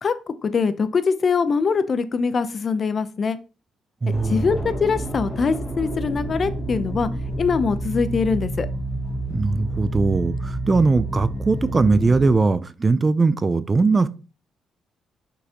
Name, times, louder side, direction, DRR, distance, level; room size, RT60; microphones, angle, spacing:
voice 1, 0.0-3.4 4.2-7.1 7.4-8.7, left 5 dB, 45° left, 0.7 m, -23 dB
voice 2, 4.0-4.5 9.3-14.1, right 3 dB, 30° right, 0.5 m, -20 dB
sound 1, 4.1-12.3, right 1 dB, 10° left, 1.8 m, -29 dB
6.2 x 5.5 x 2.9 m
cardioid pair, 90°, 0 cm